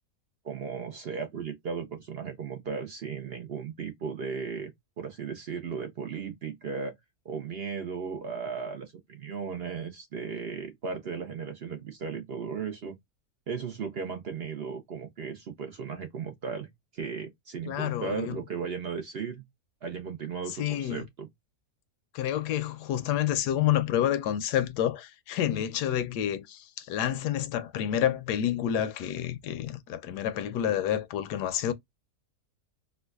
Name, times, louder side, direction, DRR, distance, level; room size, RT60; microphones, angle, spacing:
voice 1, 0.4-4.7 5.0-7.0 7.2-12.9 13.5-19.5 19.8-21.3, right 6 dB, 55° right, 0.7 m, -36 dB
voice 2, 17.7-18.4 20.5-21.0 22.1-31.7, left 10 dB, 80° left, 1.1 m, -29 dB
4.5 x 2.4 x 2.2 m
omnidirectional pair, 1.7 m